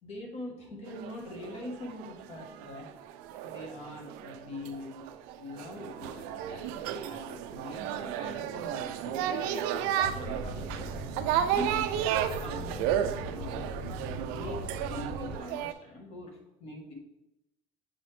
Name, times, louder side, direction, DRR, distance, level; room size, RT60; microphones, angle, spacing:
voice 1, 0.0-2.9 3.4-5.1 5.4-10.9 11.5-11.9 12.4-13.6 14.3-16.9, left 1 dB, 45° left, 2 dB, 1.3 m, -43 dB
sound 1, 0.9-15.7, right 10 dB, 85° right, 0.4 m, -33 dB
sound 2, 10.0-15.4, equal, 10° left, 2.2 m, -40 dB
7.7 x 4.0 x 3.3 m, 0.89 s
cardioid pair, 155°, 15 cm